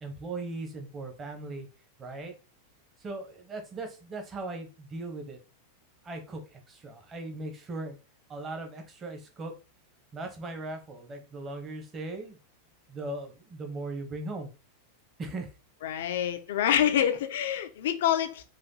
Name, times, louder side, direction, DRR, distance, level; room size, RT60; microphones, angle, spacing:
voice 1, 0.0-1.7 2.0-2.3 3.0-5.4 6.0-8.0 8.3-9.5 10.1-12.4 12.9-14.5 15.2-15.5, right 2 dB, 25° right, 1.1 m, -38 dB
voice 2, 15.8-18.4, left 10 dB, 55° left, 0.6 m, -26 dB
4.9 x 2.5 x 3.9 m
figure-of-eight pair, 90°, 0 cm